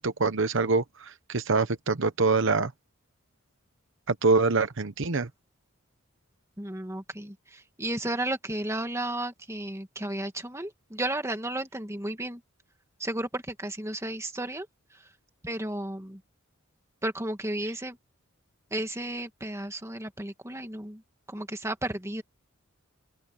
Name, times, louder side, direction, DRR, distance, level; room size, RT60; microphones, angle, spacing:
voice 1, 0.0-2.7 4.1-5.3, right 3 dB, 60° right, 1.0 m, -25 dB
voice 2, 6.6-12.4 13.0-14.7 15.4-16.2 17.0-18.0 18.7-21.0 21.3-22.2, right 1 dB, 15° right, 2.1 m, -33 dB
open air
head